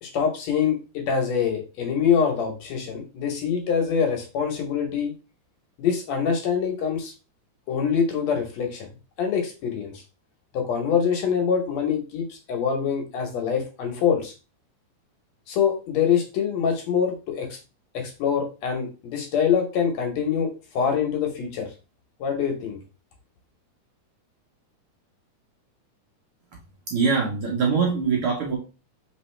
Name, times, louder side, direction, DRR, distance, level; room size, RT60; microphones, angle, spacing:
voice 1, 0.0-5.1 5.8-7.1 7.7-8.9 9.2-10.0 10.5-14.3 15.5-17.6 17.9-20.5 20.7-21.7 22.2-22.8, left 7 dB, 70° left, 3 dB, 1.9 m, -24 dB
voice 2, 26.9-28.6, right 5 dB, 65° right, -1 dB, 1.4 m, -23 dB
4.0 x 3.9 x 3.2 m, 0.31 s
omnidirectional pair, 3.5 m